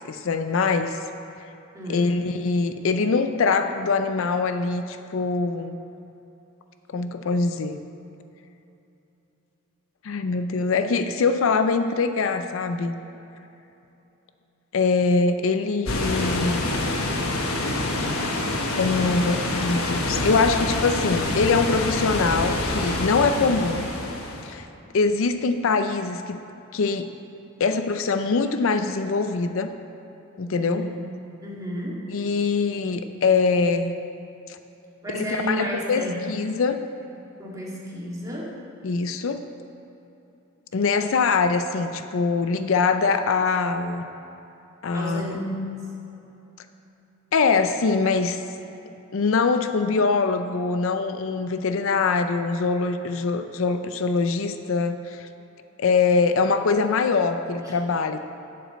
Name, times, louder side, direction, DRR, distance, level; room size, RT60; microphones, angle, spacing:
voice 1, 0.1-1.0 1.9-5.8 6.9-7.8 10.0-13.0 14.7-16.6 18.8-23.8 24.4-24.7 24.9-26.4 26.7-27.1 27.6-29.7 30.4-30.8 32.1-34.0 34.5-34.6 35.1-36.8 38.8-39.4 40.7-44.1 44.8-45.4 47.3-48.4 49.1-55.3 55.8-58.2, left 4 dB, 65° left, 8 dB, 0.5 m, -23 dB
voice 2, 1.7-2.1 23.2-23.5 30.6-31.0 31.4-32.1 35.0-36.3 37.4-38.6 44.9-45.7 57.6-57.8, equal, 15° right, -5 dB, 2.0 m, -32 dB
sound 1, 15.9-24.5, left 2 dB, 90° left, 1.2 m, -26 dB
11.5 x 5.1 x 7.9 m, 2.9 s
head